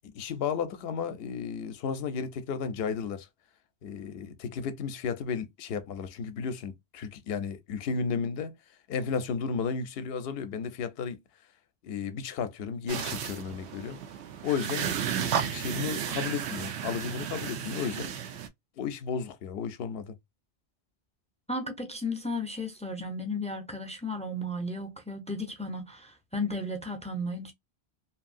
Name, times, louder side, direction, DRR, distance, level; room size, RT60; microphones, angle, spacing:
voice 1, 0.1-3.3 3.8-8.5 8.9-11.2 11.8-14.0 14.4-18.1 18.8-20.1, left 6 dB, 70° left, 0.8 m, -33 dB
sound 1, 12.9-18.5, right 8 dB, 85° right, 0.9 m, -33 dB
voice 2, 21.5-27.5, left 1 dB, 10° left, 0.4 m, -34 dB
2.9 x 2.6 x 2.5 m
omnidirectional pair, 1.1 m